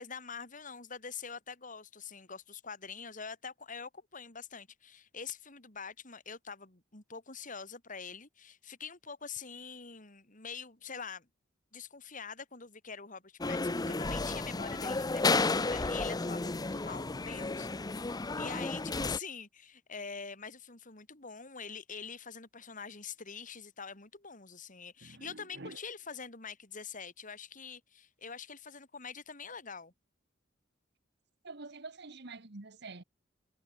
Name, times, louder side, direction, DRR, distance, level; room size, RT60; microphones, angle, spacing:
voice 1, 0.0-11.3 11.7-29.9, left 5 dB, 45° left, 3.2 m, -45 dB
sound 1, 13.4-19.2, left 3 dB, 20° left, 0.6 m, -32 dB
voice 2, 25.0-25.8 31.4-33.0, right 3 dB, 60° right, 1.6 m, -47 dB
head